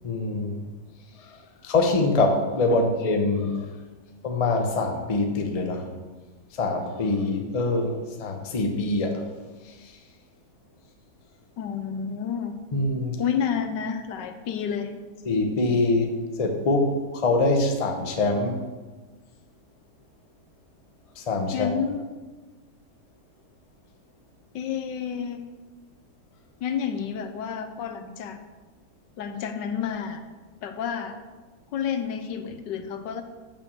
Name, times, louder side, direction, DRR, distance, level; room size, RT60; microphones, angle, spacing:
voice 1, 0.0-0.6 1.6-3.7 4.2-5.9 6.6-9.2 12.7-13.2 15.2-18.6 21.2-21.7, left 2 dB, 30° left, 3 dB, 0.6 m, -24 dB
voice 2, 11.6-12.5 13.2-14.9 21.5-22.0 24.5-25.4 26.6-28.4 29.2-30.2 30.6-31.2 31.7-33.2, left 7 dB, 80° left, 8 dB, 1.4 m, -30 dB
6.9 x 5.8 x 6.9 m, 1.3 s
omnidirectional pair, 1.9 m